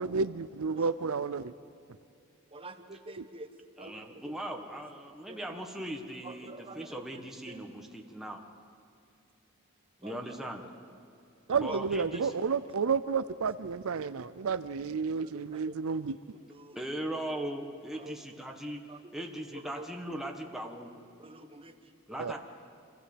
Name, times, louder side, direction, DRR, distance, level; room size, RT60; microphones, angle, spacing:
voice 1, 0.0-1.5 11.5-16.2 22.2-22.4, right 5 dB, 90° right, 14 dB, 0.6 m, -31 dB
voice 2, 0.6-1.0 2.5-3.5 3.8-4.4 4.7-4.8 5.3-5.7 6.2-7.6 10.0-11.0 11.5-11.8 12.1-12.3 15.1-16.9 17.9-18.4 18.9-19.9 21.2-22.4, right 2 dB, 25° right, 7 dB, 1.3 m, -48 dB
voice 3, 3.8-8.4 10.0-10.6 11.6-12.4 16.7-18.8 19.1-20.9 22.1-22.4, right 1 dB, ahead, 1 dB, 1.5 m, -39 dB
27.5 x 15.5 x 7.9 m, 2.5 s
head